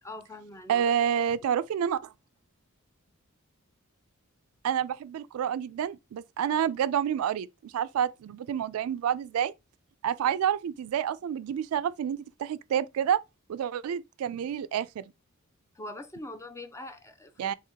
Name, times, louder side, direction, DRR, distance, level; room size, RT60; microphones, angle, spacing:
voice 1, 0.0-1.0 15.7-17.5, left 1 dB, 15° left, 0.4 m, -43 dB
voice 2, 0.7-2.1 4.6-9.5 10.0-13.2 13.5-15.0 17.4-17.5, right 9 dB, 85° right, 0.3 m, -29 dB
3.5 x 2.8 x 3.6 m
head